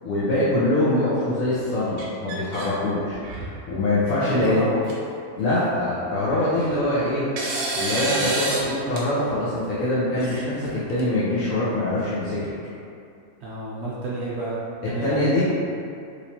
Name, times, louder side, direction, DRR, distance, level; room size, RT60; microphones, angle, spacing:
voice 1, 0.0-3.2 3.7-4.6 5.4-7.3 7.7-12.5 15.0-15.4, left 1 dB, 70° left, -11 dB, 1.1 m, -23 dB
sound 1, 2.0-2.7 3.1-3.6 4.4-4.5 4.8-4.9 6.3-6.8 7.4-8.7 9.0-9.1 10.2-11.0, right 2 dB, 85° right, 1.1 m, -29 dB
voice 2, 4.2-4.8 13.4-14.6 14.8-15.4, right 2 dB, 60° right, -8 dB, 0.7 m, -30 dB
3.1 x 2.9 x 2.7 m, 2.5 s
omnidirectional pair, 1.5 m